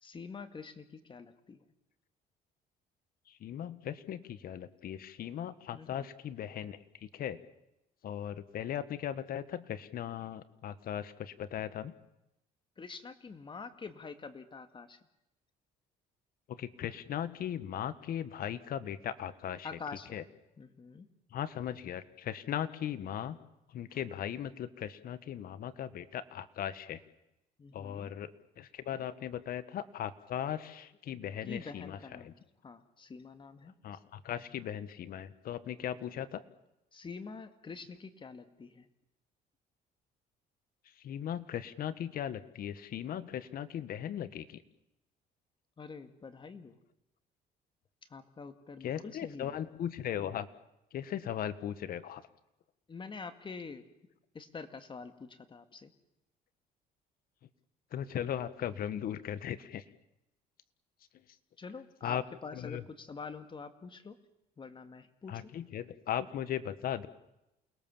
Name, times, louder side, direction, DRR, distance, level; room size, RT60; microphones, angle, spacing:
voice 1, 0.0-1.6 5.7-6.1 12.8-15.0 19.6-20.2 20.6-21.1 27.6-28.1 31.4-33.7 36.9-38.9 45.8-46.8 48.1-49.6 52.9-53.9 54.3-55.9 61.6-64.2 64.6-65.5, left 4 dB, 30° left, 9 dB, 2.1 m, -46 dB
voice 2, 3.4-6.8 7.1-7.4 8.0-11.9 16.6-19.7 20.1-20.2 21.3-23.4 23.7-27.0 27.7-32.3 33.8-36.4 41.0-44.6 48.8-50.5 50.9-52.2 57.9-59.8 62.0-62.2 62.5-62.8 65.3-67.1, left 10 dB, 60° left, 13 dB, 1.6 m, -38 dB
29.0 x 21.0 x 7.3 m, 0.88 s
cardioid pair, 110°, 17 cm